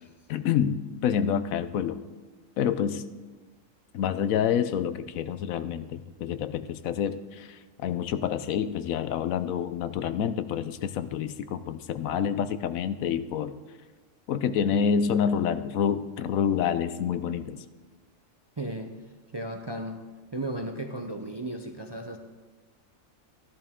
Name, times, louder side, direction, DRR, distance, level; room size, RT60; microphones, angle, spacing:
voice 1, 0.3-2.0 2.6-3.1 3.9-13.6 14.3-17.6, left 8 dB, 90° left, 12 dB, 1.1 m, -28 dB
voice 2, 18.6-18.9 19.3-20.0 20.3-22.2, right 1 dB, 35° right, 4 dB, 0.4 m, -34 dB
14.5 x 11.0 x 3.7 m, 1.3 s
omnidirectional pair, 1.4 m